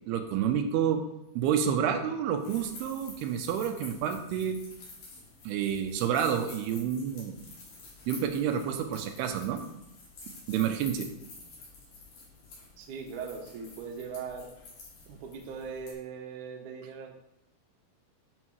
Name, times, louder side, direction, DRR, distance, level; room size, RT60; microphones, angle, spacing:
voice 1, 0.1-1.0 1.4-4.6 5.5-7.4 8.1-9.6 10.5-11.1, right 8 dB, 85° right, 6 dB, 2.7 m, -29 dB
sound 1, 2.4-15.9, left 3 dB, 60° left, 3.6 m, -49 dB
voice 2, 12.8-14.5 15.1-17.1, right 6 dB, 65° right, 2 dB, 2.1 m, -40 dB
11.0 x 5.4 x 3.1 m, 0.88 s
omnidirectional pair, 4.5 m